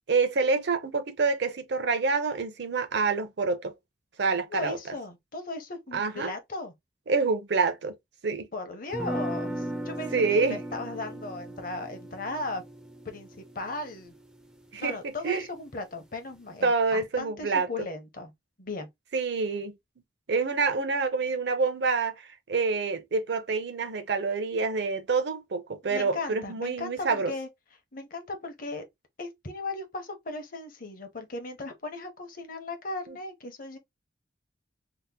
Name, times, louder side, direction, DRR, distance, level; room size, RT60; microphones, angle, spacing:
voice 1, 0.1-3.7 4.2-4.8 5.9-6.3 7.1-7.9 8.2-8.5 10.1-10.6 14.7-15.4 16.6-17.7 19.1-19.7 20.3-27.3 33.1-33.2, right 4 dB, 60° right, 0.6 m, -27 dB
voice 2, 4.5-6.7 8.5-12.6 13.0-14.1 14.8-18.3 18.6-18.9 25.9-27.5 27.9-28.8 29.2-33.8, left 2 dB, 50° left, 0.8 m, -37 dB
sound 1, 8.9-14.9, right 1 dB, 5° right, 0.4 m, -37 dB
2.9 x 2.1 x 3.5 m
head